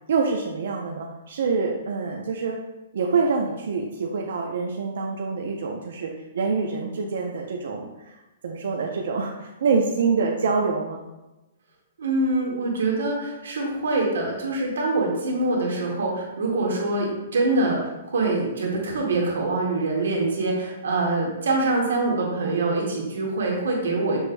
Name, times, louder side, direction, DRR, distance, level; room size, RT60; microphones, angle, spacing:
voice 1, 0.1-2.6 2.9-6.1 6.3-8.2 8.4-11.0, right 4 dB, 55° right, 0 dB, 0.4 m, -26 dB
voice 2, 12.0-17.8 18.1-24.2, right 2 dB, 90° right, -1 dB, 1.4 m, -24 dB
6.2 x 3.3 x 2.5 m, 1.0 s
hypercardioid pair, 180°, 0 cm